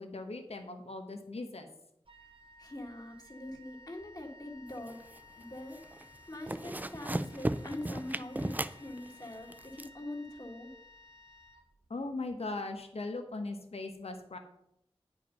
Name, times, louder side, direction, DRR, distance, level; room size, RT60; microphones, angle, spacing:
voice 1, 0.0-1.7 11.9-14.4, left 2 dB, 85° left, 6 dB, 1.1 m, -39 dB
Wind instrument woodwind instrument, 2.0-12.1, left 2 dB, 65° right, 1.1 m, -57 dB
voice 2, 2.6-5.0 5.4-10.7, left 1 dB, 40° left, 2 dB, 1.8 m, -43 dB
sound 1, 4.8-5.4 5.7-6.0 6.3-9.9, right 1 dB, 15° right, 0.4 m, -36 dB
9.5 x 5.0 x 5.3 m, 0.76 s
wide cardioid pair, 65°, 10 cm